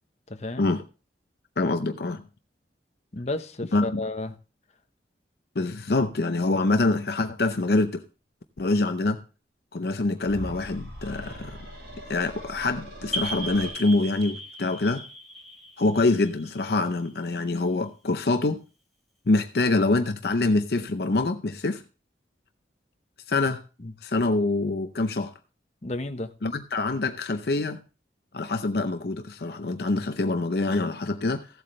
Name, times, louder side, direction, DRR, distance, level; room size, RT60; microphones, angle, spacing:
voice 1, 0.3-0.7 3.1-4.3 23.8-23.9 25.8-26.3, left 2 dB, 40° left, 7 dB, 0.9 m, -32 dB
voice 2, 1.6-2.2 3.7-4.0 5.6-8.0 8.6-9.2 9.7-11.6 12.1-15.0 15.8-18.6 19.3-21.8 23.3-23.6 24.0-25.3 26.4-27.8 28.3-31.5, left 2 dB, 60° left, 8 dB, 0.6 m, -25 dB
sound 1, 10.2-13.7, right 1 dB, 75° right, 6.5 m, -40 dB
sound 2, 13.1-17.6, right 1 dB, ahead, 3.0 m, -37 dB
15.5 x 8.0 x 3.1 m, 0.34 s
head